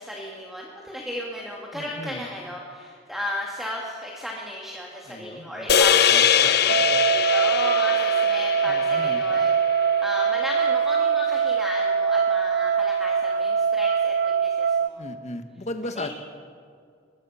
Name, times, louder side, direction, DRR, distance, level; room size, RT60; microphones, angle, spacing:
voice 1, 0.0-6.6 7.3-15.0 16.0-16.1, left 1 dB, ahead, -2 dB, 2.2 m, -35 dB
voice 2, 1.7-2.3 5.0-7.0 8.6-9.2 15.0-16.1, left 1 dB, 40° left, 7 dB, 1.6 m, -37 dB
sound 1, 5.7-10.1, left 8 dB, 60° left, 0.9 m, -22 dB
sound 2, 6.7-14.9, right 6 dB, 55° right, 0.6 m, -23 dB
23.0 x 22.0 x 5.8 m, 2.2 s
head